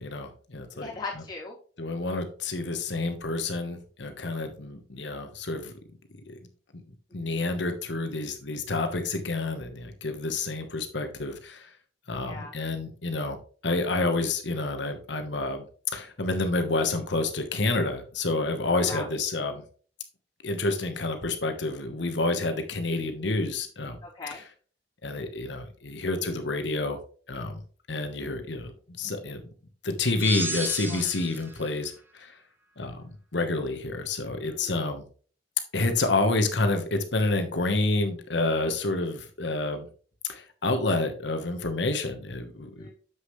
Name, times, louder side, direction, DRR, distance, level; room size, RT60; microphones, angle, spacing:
voice 1, 0.0-0.9 1.8-5.7 6.3-6.4 7.1-11.7 12.1-13.4 13.6-15.6 15.9-19.6 20.4-24.0 25.0-27.0 27.3-27.6 27.9-28.7 29.0-29.4 29.8-32.3 32.8-35.0 35.7-39.9 40.3-42.9, left 2 dB, 70° left, 6 dB, 1.2 m, -29 dB
voice 2, 0.7-1.6 7.2-7.4 12.2-12.5 18.7-19.1 24.0-24.4 30.9-31.0 34.4-34.8 42.8-42.9, left 3 dB, 20° left, -7 dB, 3.1 m, -39 dB
sound 1, 30.2-31.6, right 2 dB, 10° right, 1.2 m, -33 dB
7.4 x 6.5 x 3.1 m, 0.42 s
head